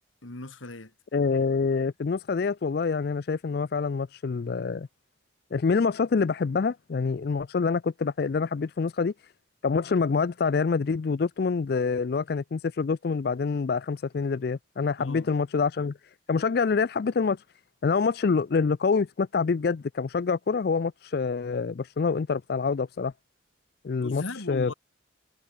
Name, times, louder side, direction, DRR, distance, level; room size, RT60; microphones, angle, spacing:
voice 1, 0.2-0.9 15.0-15.3 24.0-24.7, left 2 dB, 90° left, 2.5 m, -38 dB
voice 2, 1.1-4.9 5.5-9.1 9.6-15.9 16.3-17.4 17.8-23.1 23.8-24.7, left 5 dB, 50° left, 0.4 m, -26 dB
head